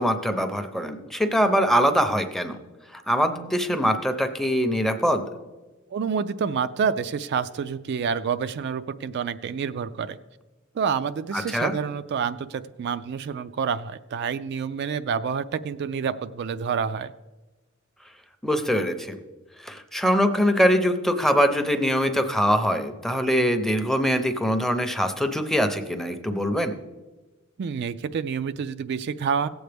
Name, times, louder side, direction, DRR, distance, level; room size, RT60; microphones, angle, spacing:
voice 1, 0.0-2.6 2.9-5.3 11.3-11.7 18.4-19.2 19.6-26.7, equal, ahead, 7 dB, 0.6 m, -23 dB
voice 2, 5.9-10.2 10.8-17.1 27.6-29.5, right 6 dB, 55° right, 11 dB, 0.3 m, -28 dB
17.0 x 7.9 x 3.4 m, 1.2 s
head